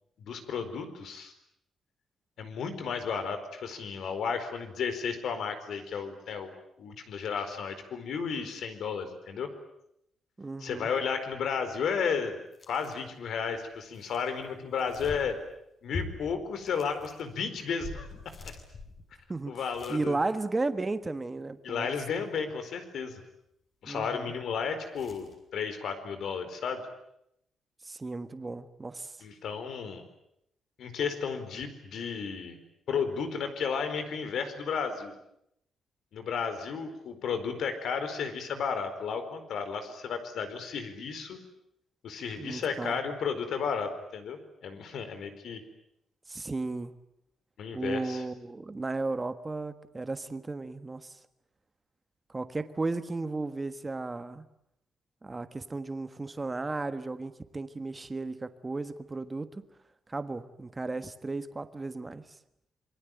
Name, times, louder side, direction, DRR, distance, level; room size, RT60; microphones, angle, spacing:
voice 1, 0.2-1.3 2.4-6.5 6.8-9.5 10.6-12.4 12.7-15.4 15.8-18.1 18.4-18.5 19.5-20.2 21.6-23.2 23.8-26.9 29.2-30.0 30.8-32.6 32.9-35.1 36.1-41.4 42.0-45.6 47.6-48.2, left 6 dB, 65° left, 9 dB, 4.5 m, -33 dB
voice 2, 10.4-10.9 19.3-19.6 19.9-21.9 23.8-24.3 27.8-29.1 42.4-43.0 46.3-46.9 47.7-51.2 52.3-54.5 55.2-59.6 60.1-62.2, right 3 dB, 20° right, 11 dB, 1.4 m, -34 dB
sound 1, 12.5-13.2 13.5-15.6 15.9-20.0 20.4-20.5 24.9-25.3, left 4 dB, 35° left, 6.6 m, -44 dB
27.0 x 23.5 x 9.2 m, 0.78 s
cardioid pair, 155°, 0 cm